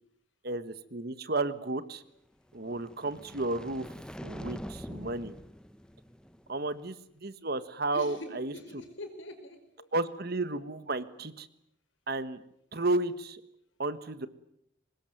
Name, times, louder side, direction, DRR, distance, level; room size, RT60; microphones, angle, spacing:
voice 1, 0.4-2.0 2.5-3.9 4.2-5.3 6.5-8.5 9.9-11.5 12.1-12.4 12.7-13.4 13.8-14.3, right 2 dB, 55° right, 13 dB, 1.5 m, -32 dB
sound 1, 2.5-6.8, equal, 5° left, 1.0 m, -44 dB
voice 2, 7.9-9.9, left 1 dB, 90° left, 7 dB, 5.4 m, -44 dB
24.0 x 20.5 x 9.3 m, 0.76 s
head